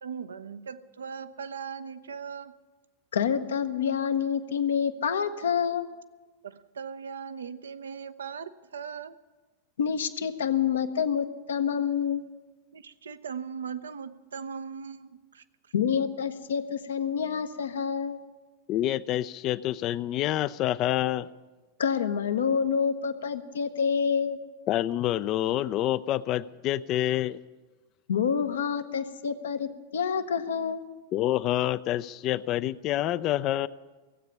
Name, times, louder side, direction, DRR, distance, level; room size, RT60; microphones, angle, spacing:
voice 1, 0.0-2.6 6.4-9.2 12.7-15.4, right 6 dB, 70° right, 12 dB, 0.6 m, -39 dB
voice 2, 3.1-5.9 9.8-12.2 15.7-18.2 21.8-24.4 28.1-30.8, left 7 dB, 65° left, 10 dB, 0.8 m, -27 dB
voice 3, 18.7-21.3 24.7-27.4 31.1-33.7, left 13 dB, 35° left, 17 dB, 0.4 m, -27 dB
16.0 x 8.3 x 9.9 m, 1.3 s
figure-of-eight pair, 90°, 0 cm